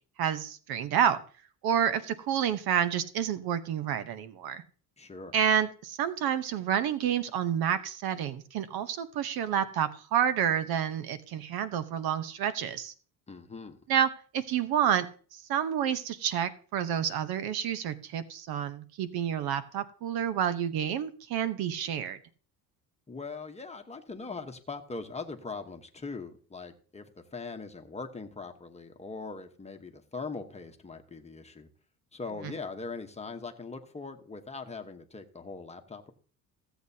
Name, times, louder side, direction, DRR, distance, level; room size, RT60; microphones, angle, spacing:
voice 1, 0.2-1.2 1.6-4.6 5.3-12.9 13.9-15.1 15.5-22.2, right 9 dB, 70° right, 12 dB, 0.9 m, -29 dB
voice 2, 5.0-5.3 13.3-13.8 23.1-31.7 32.1-36.1, left 4 dB, 15° left, 5 dB, 1.0 m, -41 dB
16.0 x 8.0 x 2.8 m, 0.41 s
cardioid pair, 125°, 38 cm